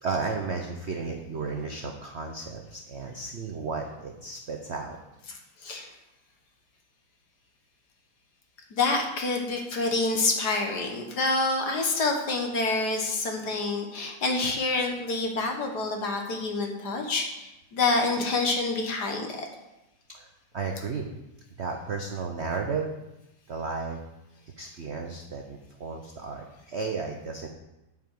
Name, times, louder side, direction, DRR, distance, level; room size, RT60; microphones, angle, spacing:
voice 1, 0.0-5.0 20.1-20.3 20.5-21.1 21.6-22.9 23.5-24.0 24.6-27.5, right 4 dB, 65° right, 3 dB, 0.6 m, -33 dB
voice 2, 5.3-5.9 8.7-19.5, left 3 dB, 55° left, 3 dB, 1.7 m, -27 dB
9.2 x 5.1 x 7.7 m, 0.94 s
omnidirectional pair, 2.3 m